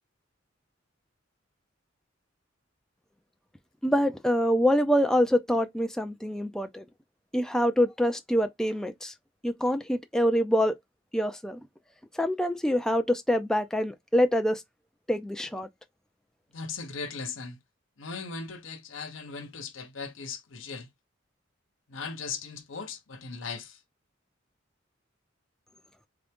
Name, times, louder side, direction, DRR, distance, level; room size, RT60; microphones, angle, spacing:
voice 1, 3.8-6.8 7.3-9.1 9.4-10.8 11.1-11.6 12.1-14.6 15.1-15.7, equal, 5° left, 0.4 m, -25 dB
voice 2, 16.5-17.6 18.0-20.9 21.9-23.8, left 5 dB, 80° left, 1.0 m, -38 dB
3.7 x 3.4 x 3.6 m
head